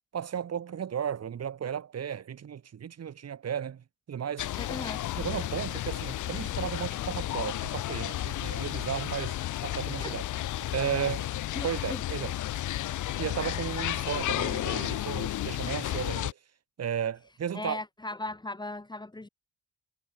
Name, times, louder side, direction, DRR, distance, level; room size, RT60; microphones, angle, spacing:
voice 1, 0.1-4.5 5.2-10.2 10.6-11.3 11.6-12.3 13.2-16.4 16.8-17.8, right 8 dB, 55° right, 7.4 m, -34 dB
sound 1, 4.4-16.3, left 14 dB, 80° left, 2.0 m, -32 dB
voice 2, 4.6-5.0 10.0-10.2 11.5-12.0 17.5-19.3, left 2 dB, 15° left, 3.5 m, -38 dB
cardioid pair, 90°, 30 cm